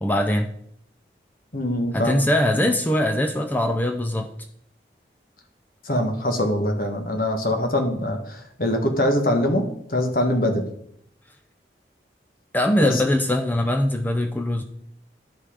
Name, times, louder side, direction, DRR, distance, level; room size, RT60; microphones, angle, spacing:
voice 1, 0.0-0.5 1.9-4.3 12.5-14.6, left 1 dB, 10° left, 5 dB, 0.5 m, -22 dB
voice 2, 1.5-2.2 5.8-10.7 12.8-13.0, left 1 dB, 55° left, 5 dB, 1.4 m, -23 dB
11.0 x 5.5 x 5.0 m, 0.70 s
head